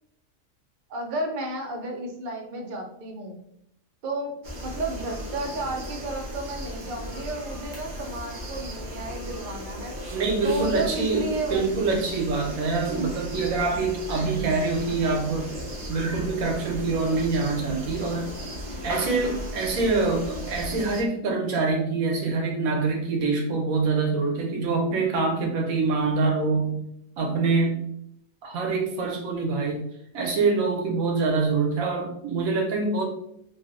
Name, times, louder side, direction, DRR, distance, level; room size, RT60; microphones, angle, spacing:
voice 1, 0.9-3.4 4.0-4.3 4.6-9.9 10.4-12.0, right 2 dB, 60° right, 2 dB, 0.5 m, -32 dB
sound 1, 4.4-21.0, equal, 45° right, 0.8 m, -36 dB
voice 2, 10.1-15.5 15.9-18.3 18.8-26.8 27.2-27.8 28.4-29.8 30.1-33.1, right 4 dB, 80° right, 2 dB, 1.1 m, -25 dB
3.2 x 2.5 x 2.5 m, 0.75 s
omnidirectional pair, 1.4 m